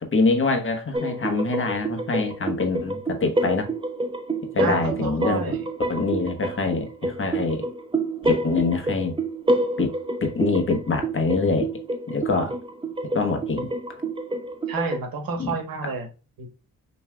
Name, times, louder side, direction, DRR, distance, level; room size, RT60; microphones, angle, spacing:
voice 1, 0.0-3.7 4.5-5.5 5.9-7.7 8.2-9.2 9.8-9.9 10.2-11.7 12.1-12.5 13.1-13.7 15.4-15.6 15.8-15.9, left 3 dB, 35° left, 1.1 m, -24 dB
sound 1, 0.9-15.0, right 2 dB, 15° right, 0.6 m, -28 dB
voice 2, 4.6-5.6 14.7-16.1 16.4-16.5, right 4 dB, 80° right, 1.3 m, -29 dB
5.7 x 3.2 x 2.3 m
cardioid pair, 85°, 34 cm